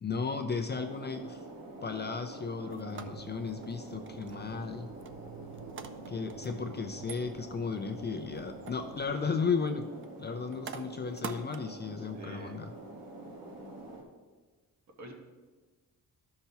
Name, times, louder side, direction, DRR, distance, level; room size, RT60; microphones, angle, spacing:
voice 1, 0.0-1.4 1.8-4.9 6.1-9.9 10.2-12.7, left 5 dB, 30° left, 5 dB, 0.4 m, -35 dB
sound 1, 0.7-14.0, right 2 dB, 70° right, 1.4 m, -47 dB
sound 2, 2.7-14.1, right 5 dB, 35° right, 0.4 m, -49 dB
sound 3, 2.8-9.1, right 6 dB, 85° right, 0.7 m, -51 dB
voice 2, 12.0-12.6 15.0-15.1, right 1 dB, 50° right, 2 dB, 1.2 m, -47 dB
13.0 x 5.8 x 2.7 m, 1.4 s
wide cardioid pair, 170°, 35 cm